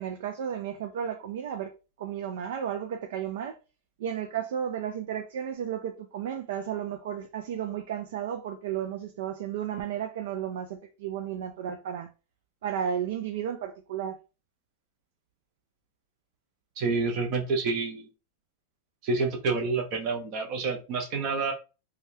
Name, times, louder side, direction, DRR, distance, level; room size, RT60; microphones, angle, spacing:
voice 1, 0.0-1.7 2.0-3.6 4.0-12.1 12.6-14.2, right 9 dB, 70° right, 0.4 m, -33 dB
voice 2, 16.8-18.1 19.0-21.5, right 4 dB, 40° right, 0.7 m, -28 dB
3.3 x 2.3 x 2.7 m
supercardioid pair, 155°, 0 cm